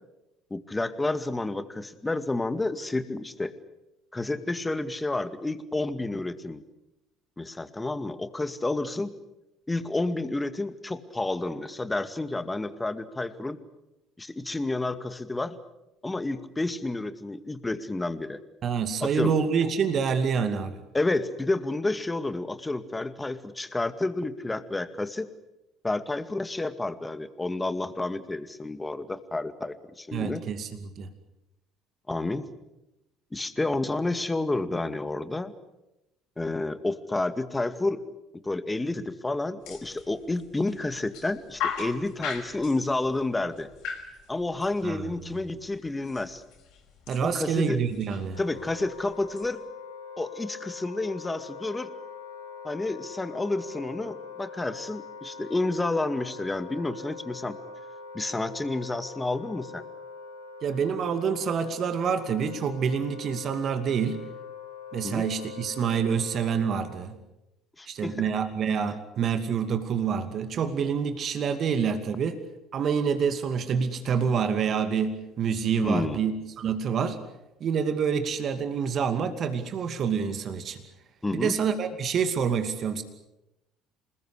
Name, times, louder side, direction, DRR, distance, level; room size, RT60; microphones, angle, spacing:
voice 1, 0.5-3.5 4.1-6.6 7.4-9.1 9.7-13.6 14.2-15.6 16.0-18.4 19.0-19.3 20.9-25.3 25.8-30.4 32.1-32.5 33.3-35.5 36.4-38.0 38.4-43.7 44.3-46.4 47.2-47.8 48.4-49.6 50.2-51.9 52.6-57.6 58.1-59.8 65.0-65.2 67.8-68.3 75.8-76.2 81.2-81.6, left 2 dB, 15° left, 11 dB, 2.2 m, -30 dB
voice 2, 18.6-20.8 30.1-31.1 44.8-45.1 47.1-48.4 60.6-64.2 64.9-67.2 67.9-72.4 72.7-77.2 77.6-80.8 81.3-83.0, right 6 dB, 50° right, 8 dB, 2.5 m, -27 dB
sound 1, 39.6-49.5, left 6 dB, 60° left, 5.3 m, -40 dB
Wind instrument woodwind instrument, 48.3-67.0, left 6 dB, 90° left, 4.0 m, -43 dB
28.0 x 20.5 x 8.4 m, 0.93 s
figure-of-eight pair, 55°, 0 cm